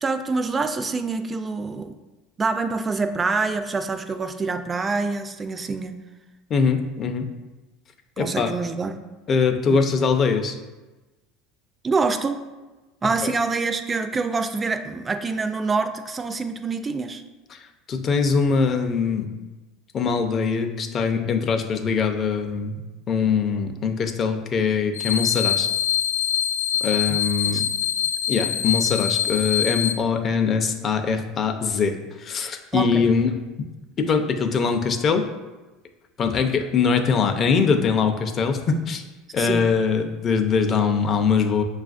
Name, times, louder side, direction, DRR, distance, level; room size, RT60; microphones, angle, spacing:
voice 1, 0.0-1.9 2.4-6.0 8.2-9.0 9.7-9.8 11.8-12.4 13.0-17.2 27.1-27.2 27.5-27.6 32.7-33.0 39.4-39.6, right 4 dB, 25° right, 8 dB, 0.3 m, -26 dB
voice 2, 6.5-7.3 8.2-8.5 9.3-10.6 13.2-13.3 17.5-19.3 19.9-22.8 23.1-25.7 26.8-27.7 28.3-33.3 34.0-35.2 36.2-39.0 39.3-41.6, left 5 dB, 40° left, 5 dB, 0.5 m, -22 dB
sound 1, 24.9-29.9, left 9 dB, 90° left, 0.3 m, -24 dB
6.7 x 2.4 x 2.4 m, 1.1 s
supercardioid pair, 105°, 0 cm